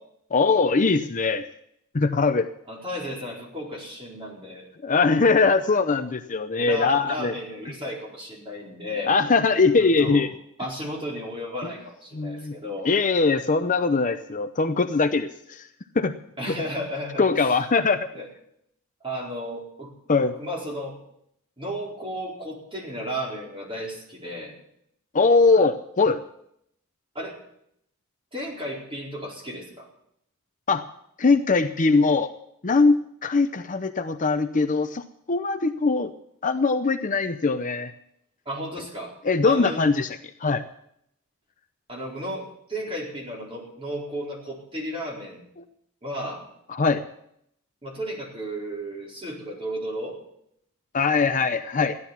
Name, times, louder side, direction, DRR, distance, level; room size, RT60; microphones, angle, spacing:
voice 1, 0.3-1.5 1.9-2.5 4.8-7.3 9.1-10.3 12.2-12.5 12.9-15.7 16.0-16.1 16.5-16.6 17.2-18.1 20.1-20.3 25.1-26.2 30.7-30.8 31.2-32.3 32.6-35.0 35.3-36.1 36.4-37.9 39.2-40.2 40.4-40.6 46.7-47.0 50.9-52.0, left 4 dB, 35° left, 8 dB, 0.7 m, -21 dB
voice 2, 2.7-4.7 6.6-9.1 9.8-10.3 10.6-12.9 16.4-17.5 18.1-18.3 19.0-19.9 20.3-21.0 21.6-24.5 27.1-27.4 28.3-29.9 38.4-39.2 39.4-39.8 41.9-45.4 46.0-46.5 47.8-50.2, equal, 25° right, -3 dB, 4.6 m, -34 dB
15.0 x 11.0 x 7.2 m, 0.73 s
head